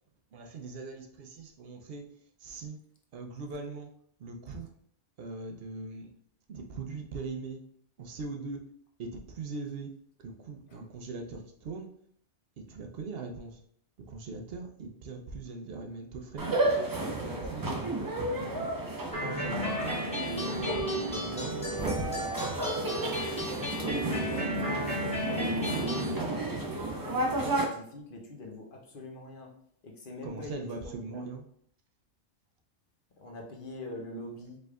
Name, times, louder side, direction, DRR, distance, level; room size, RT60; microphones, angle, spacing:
voice 1, 0.3-2.1 2.4-2.8 3.1-3.9 4.2-4.7 5.2-6.1 6.5-7.6 8.0-8.7 9.0-11.9 12.6-13.6 14.1-16.6 17.0-17.7 18.3-18.7 19.2-21.7 30.2-31.5, right 3 dB, 60° right, 4 dB, 0.8 m, -40 dB
sound 1, 16.4-27.6, right 2 dB, 25° right, 0.4 m, -32 dB
sound 2, 19.1-26.1, equal, 5° left, 0.8 m, -34 dB
voice 2, 23.5-26.5 26.9-29.5 29.8-31.2 33.2-34.6, left 1 dB, 50° left, 1 dB, 1.0 m, -44 dB
5.1 x 3.3 x 2.3 m, 0.66 s
omnidirectional pair, 1.2 m